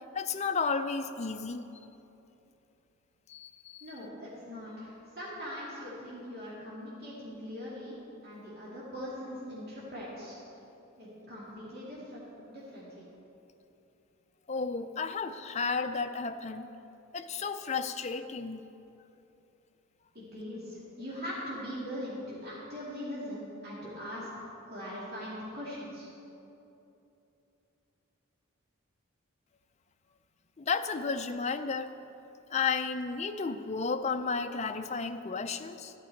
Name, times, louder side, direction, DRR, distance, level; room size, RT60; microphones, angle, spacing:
voice 1, 0.1-1.6 3.3-3.8 14.5-16.7 17.1-18.6 30.6-31.9 32.5-35.9, left 5 dB, 30° left, 8 dB, 0.4 m, -33 dB
voice 2, 3.8-8.0 8.2-10.3 11.0-13.0 20.1-26.1, equal, 45° right, -8 dB, 2.4 m, -41 dB
14.0 x 9.1 x 4.5 m, 2.9 s
head